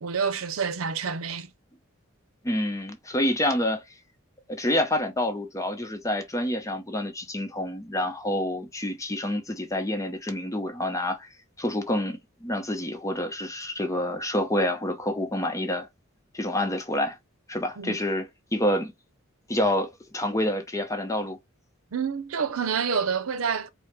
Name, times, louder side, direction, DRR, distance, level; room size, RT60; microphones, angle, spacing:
voice 1, 0.0-1.5 17.8-18.0 21.9-23.7, right 6 dB, 85° right, 0.6 m, -28 dB
voice 2, 2.4-3.8 4.5-11.3 11.6-15.9 16.3-17.2 17.5-18.9 19.5-21.4, left 1 dB, 15° left, 0.7 m, -28 dB
4.8 x 2.1 x 3.1 m
head